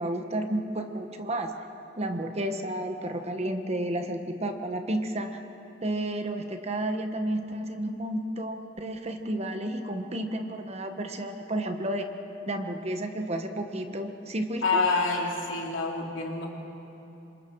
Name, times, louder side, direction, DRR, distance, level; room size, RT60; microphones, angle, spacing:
voice 1, 0.0-1.5 2.0-5.4 5.8-12.1 12.5-14.8, right 1 dB, 35° right, 6 dB, 1.2 m, -31 dB
voice 2, 14.6-16.5, left 3 dB, 85° left, -1 dB, 3.2 m, -27 dB
27.5 x 26.0 x 4.7 m, 2.9 s
head